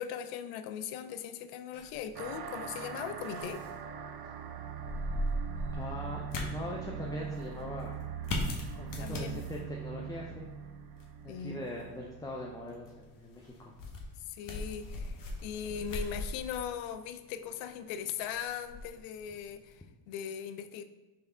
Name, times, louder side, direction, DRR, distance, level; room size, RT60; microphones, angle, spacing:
voice 1, 0.0-3.6 9.0-9.4 11.3-11.6 14.2-20.8, left 8 dB, 75° left, 10 dB, 0.5 m, -39 dB
sound 1, 1.7-19.8, left 1 dB, 45° left, 1.0 m, -41 dB
sound 2, 2.1-13.1, right 7 dB, 55° right, 0.6 m, -41 dB
voice 2, 5.7-8.0 8.7-10.5 11.2-13.7, left 1 dB, 10° left, -1 dB, 0.5 m, -42 dB
3.4 x 3.4 x 4.3 m, 1.2 s
supercardioid pair, 75°, 47 cm